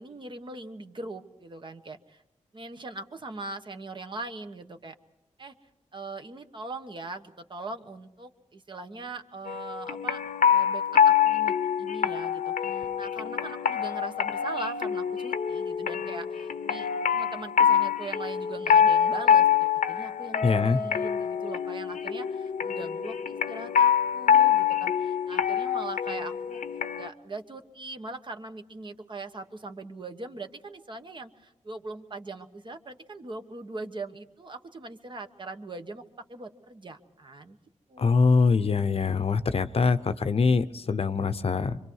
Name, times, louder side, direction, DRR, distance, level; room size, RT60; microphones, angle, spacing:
voice 1, 0.0-2.2 2.5-4.9 5.4-5.5 5.9-10.2 10.5-26.6 27.0-36.0 36.3-37.6 37.9-38.3, right 2 dB, 40° right, 7 dB, 1.3 m, -41 dB
sound 1, 9.5-27.1, left 8 dB, 85° left, 0.9 m, -25 dB
voice 2, 20.4-20.8 38.0-41.8, left 4 dB, 50° left, 11 dB, 0.8 m, -23 dB
26.0 x 24.5 x 4.7 m, 0.83 s
wide cardioid pair, 115°, 13 cm